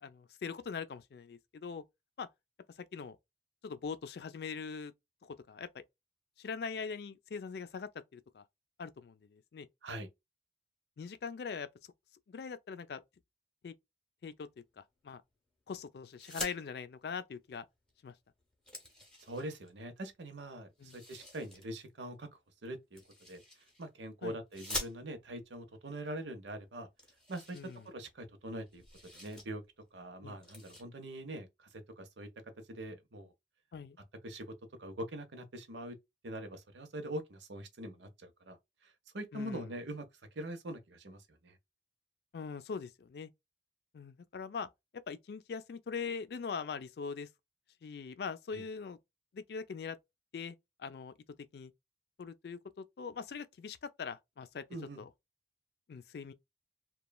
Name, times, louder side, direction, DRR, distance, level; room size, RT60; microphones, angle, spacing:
voice 1, 0.0-1.8 2.2-2.3 2.9-3.2 3.6-4.9 5.2-5.7 6.4-8.4 8.8-9.7 11.0-11.7 12.3-13.0 13.6-13.7 14.2-14.5 14.8-15.2 15.7-17.7 18.0-18.1 20.8-21.0 24.2-24.4 27.5-27.8 30.2-30.4 33.7-34.0 39.3-39.7 42.3-43.3 43.9-47.3 47.8-49.0 49.3-50.0 50.3-51.1 51.5-51.7 52.2-54.6 55.0-55.1 55.9-56.3, left 5 dB, 60° left, 0.3 m, -42 dB
sound 1, 16.1-16.6 17.9-18.0 18.3-19.7 20.8-21.7 22.9-23.9 24.5-25.4 26.2-26.3 26.6-26.7 27.0-28.3 28.6-29.5 29.8-30.0 30.4-30.8, left 1 dB, 5° left, 0.7 m, -45 dB
voice 2, 19.2-22.3 22.6-23.0 23.3-23.4 23.8-26.9 27.3-27.6 27.8-29.6 29.9-32.3 32.7-33.3 34.2-36.0 36.2-38.6 38.8-40.1 40.4-41.6 48.5-48.6 54.7-55.0, right 1 dB, 75° right, 0.7 m, -43 dB
3.0 x 2.2 x 2.2 m
head